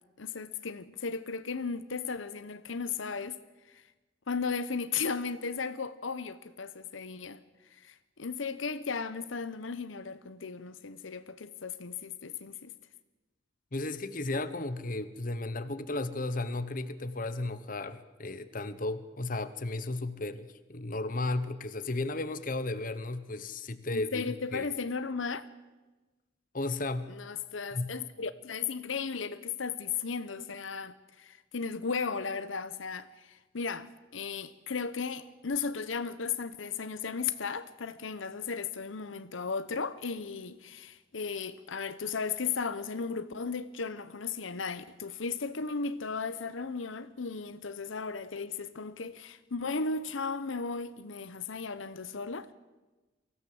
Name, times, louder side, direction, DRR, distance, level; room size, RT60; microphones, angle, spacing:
voice 1, 0.2-3.4 3.7-3.8 4.3-7.4 7.7-12.7 23.9-25.5 27.1-52.5, left 5 dB, 80° left, 0.9 m, -35 dB
voice 2, 13.7-24.7 26.5-27.1 27.7-27.9, left 2 dB, 45° left, 1.1 m, -34 dB
23.5 x 16.0 x 7.7 m
head